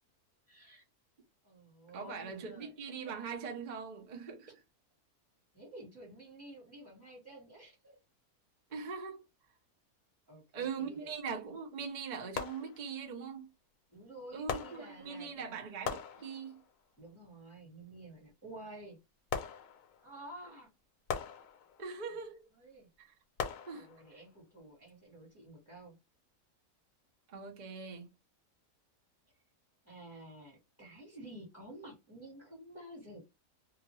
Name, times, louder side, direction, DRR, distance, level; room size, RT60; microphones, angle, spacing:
voice 1, 0.5-0.8 1.4-2.7 5.5-8.0 10.3-11.1 13.9-15.6 17.0-19.0 20.0-20.7 22.5-22.9 23.7-25.9 29.8-33.2, right 1 dB, 10° left, 1.5 m, -51 dB
voice 2, 1.9-4.6 8.7-9.2 10.5-13.5 14.3-16.6 21.8-22.4 23.0-23.1 23.7-23.9 27.3-28.1, right 5 dB, 40° right, 0.7 m, -41 dB
sound 1, 10.8-11.0 12.4-13.2 14.5-15.4 15.9-16.8 19.3-20.2 21.1-22.0 23.4-24.3 24.9-25.0, left 6 dB, 65° left, 0.9 m, -41 dB
2.8 x 2.5 x 3.1 m
omnidirectional pair, 1.6 m